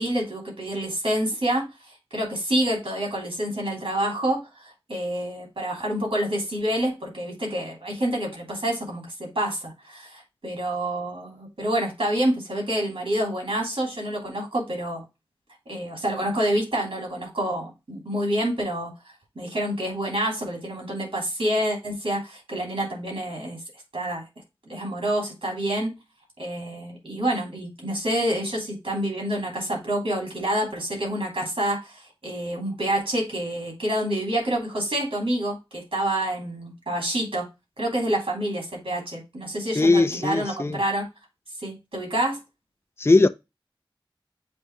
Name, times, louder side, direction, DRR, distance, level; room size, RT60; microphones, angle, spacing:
voice 1, 0.0-15.0 15.7-18.9 19.3-23.6 23.9-24.2 24.7-25.9 26.4-37.5 37.8-41.1 41.6-42.4, right 1 dB, 80° right, 3.0 m, -27 dB
voice 2, 39.8-40.8 43.0-43.3, left 3 dB, 30° left, 0.4 m, -19 dB
7.6 x 2.7 x 4.6 m
wide cardioid pair, 45°, 9 cm